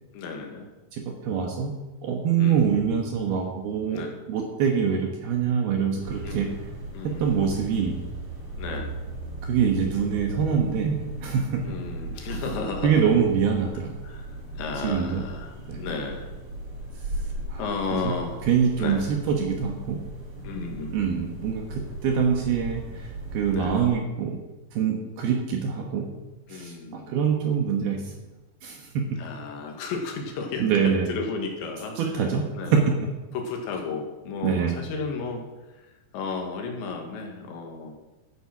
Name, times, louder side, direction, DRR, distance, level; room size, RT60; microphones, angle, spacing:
voice 1, 0.1-0.7 2.4-2.7 3.9-4.2 6.2-6.6 6.9-7.4 8.6-8.9 11.6-13.0 14.0-16.3 17.5-18.5 18.8-19.1 20.4-21.3 23.5-23.8 26.5-27.1 29.2-32.8 33.3-38.0, left 4 dB, 80° left, 2 dB, 4.1 m, -34 dB
voice 2, 0.9-1.7 2.0-6.5 7.0-8.0 9.4-11.6 12.8-13.9 14.8-15.2 15.7-15.8 17.5-17.6 18.0-18.1 18.5-20.0 20.9-24.4 24.7-26.1 26.5-28.1 28.6-29.1 30.6-31.1 32.0-32.4 34.4-34.8, right 7 dB, 70° right, 2 dB, 3.0 m, -25 dB
sound 1, 6.0-23.9, right 2 dB, 50° right, 6.9 m, -37 dB
13.0 x 10.5 x 6.1 m, 1.1 s
omnidirectional pair, 5.1 m